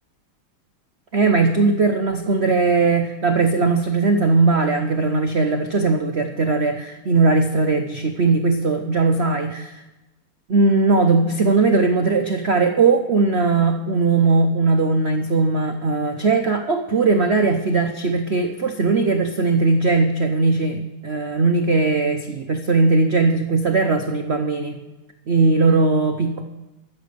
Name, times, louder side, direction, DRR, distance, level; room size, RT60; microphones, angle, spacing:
voice 1, 1.1-9.8 10.5-24.8 25.3-26.4, right 3 dB, 90° right, 5 dB, 0.5 m, -19 dB
13.5 x 7.3 x 6.7 m, 1.1 s
omnidirectional pair, 2.4 m